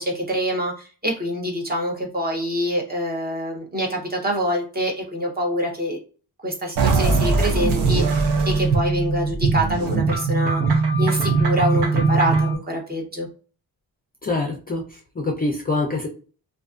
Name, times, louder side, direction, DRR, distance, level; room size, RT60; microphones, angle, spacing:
voice 1, 0.0-6.0 6.4-13.3, equal, 25° right, 0 dB, 0.7 m, -25 dB
sound 1, 6.8-12.6, right 4 dB, 90° right, 0.6 m, -20 dB
voice 2, 14.2-16.1, left 2 dB, 25° left, 0 dB, 0.4 m, -25 dB
2.4 x 2.4 x 2.4 m, 0.38 s
wide cardioid pair, 140°, 40 cm